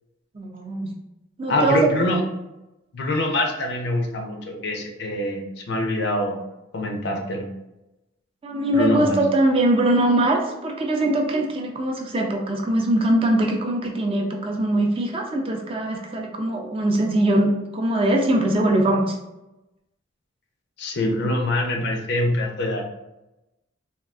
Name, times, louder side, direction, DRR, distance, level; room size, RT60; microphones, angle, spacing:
voice 1, 0.3-0.9 1.4-1.9 8.4-19.2, right 1 dB, 30° right, 1 dB, 0.4 m, -22 dB
voice 2, 1.5-2.2 2.9-6.3 6.7-7.5 8.7-9.2 20.8-22.9, left 1 dB, 60° left, 3 dB, 0.5 m, -24 dB
3.5 x 2.3 x 2.4 m, 0.96 s
head